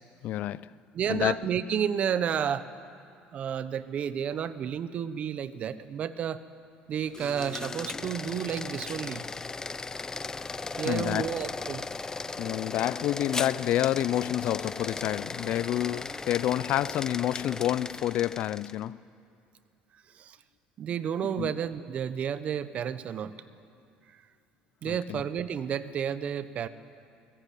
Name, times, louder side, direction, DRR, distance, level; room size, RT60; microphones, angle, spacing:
voice 1, 0.2-0.7 1.1-1.4 10.8-11.3 12.4-19.0 21.4-21.5 24.8-25.2, left 13 dB, 60° left, 0.5 m, -28 dB
voice 2, 0.9-2.7 3.3-6.4 6.9-9.2 10.8-11.8 20.1-20.4 20.8-23.3 24.8-26.7, right 8 dB, 50° right, 1.1 m, -31 dB
sound 1, 7.1-18.8, left 4 dB, 20° left, 0.8 m, -37 dB
23.0 x 20.0 x 8.6 m
supercardioid pair, 95°, 3 cm